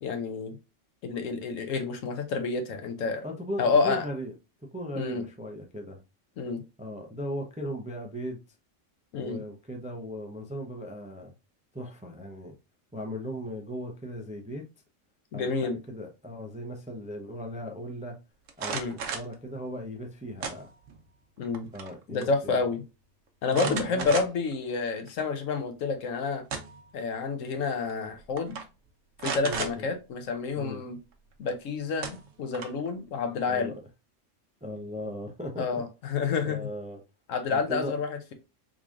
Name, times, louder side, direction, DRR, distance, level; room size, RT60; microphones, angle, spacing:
voice 1, 0.0-0.6 1.0-3.2 3.6-4.0 4.9-5.2 6.4-6.6 9.1-9.4 15.3-15.8 18.7-18.9 21.4-21.7 22.1-22.8 23.4-26.4 26.9-28.6 29.2-31.0 31.4-33.7 35.6-36.6 37.3-38.3, left 4 dB, 90° left, 1.1 m, -29 dB
voice 2, 3.2-4.3 4.7-6.0 6.8-8.4 9.2-11.3 11.7-12.6 12.9-14.6 15.3-18.2 18.6-20.7 21.7-22.7 23.5-24.1 29.4-29.9 30.6-30.8 33.5-33.7 34.6-35.8 36.4-37.0 37.5-38.0, equal, 10° right, 0.3 m, -37 dB
sound 1, 18.5-19.3 20.4-21.0 21.4-21.9 22.2-22.3 23.5-24.5 25.1-25.2 26.2-26.9 27.9-28.1 28.4-28.6 29.2-29.7 31.5-31.6 32.0-32.9, right 5 dB, 80° right, 1.1 m, -34 dB
3.7 x 3.1 x 2.4 m
omnidirectional pair, 1.3 m